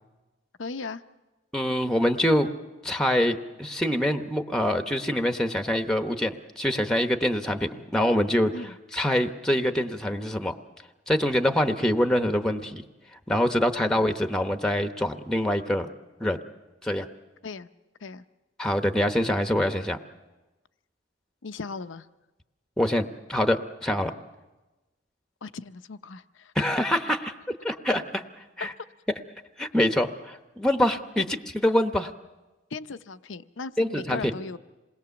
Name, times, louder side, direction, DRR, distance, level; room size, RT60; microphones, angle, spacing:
voice 1, 0.6-1.0 8.5-8.8 13.8-14.0 17.4-17.7 18.0-18.2 21.4-22.1 25.4-26.5 32.7-34.6, left 4 dB, 85° left, 11 dB, 0.7 m, -37 dB
voice 2, 1.5-2.5 2.8-10.5 11.1-12.8 13.3-15.9 16.2-16.4 16.8-17.1 18.6-20.0 22.8-24.1 26.5-27.3 27.6-28.2 28.6-28.7 29.6-31.2 31.5-32.1 33.8-34.3, left 1 dB, 5° left, 7 dB, 0.9 m, -25 dB
27.0 x 20.5 x 7.0 m, 1.1 s
head